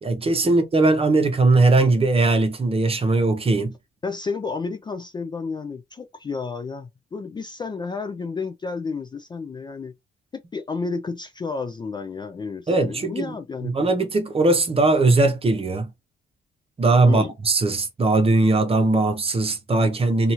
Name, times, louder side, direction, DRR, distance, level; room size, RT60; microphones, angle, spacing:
voice 1, 0.0-3.8 12.7-13.4 13.6-15.9 16.8-20.3, right 2 dB, 30° right, 0.8 m, -19 dB
voice 2, 4.0-9.9 10.3-13.9 17.0-17.3, left 4 dB, 25° left, 0.3 m, -31 dB
2.8 x 2.4 x 2.7 m
cardioid pair, 90°, 20 cm